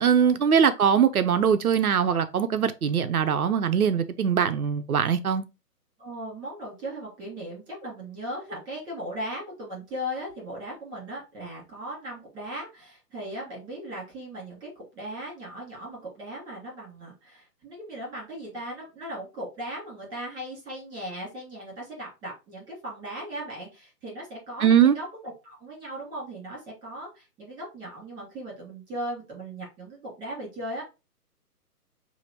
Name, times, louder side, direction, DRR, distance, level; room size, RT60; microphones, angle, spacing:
voice 1, 0.0-5.4 24.6-25.0, right 7 dB, 65° right, 0.7 m, -22 dB
voice 2, 6.0-30.8, right 1 dB, 10° right, 2.5 m, -38 dB
6.5 x 2.7 x 2.9 m
figure-of-eight pair, 145°, 48 cm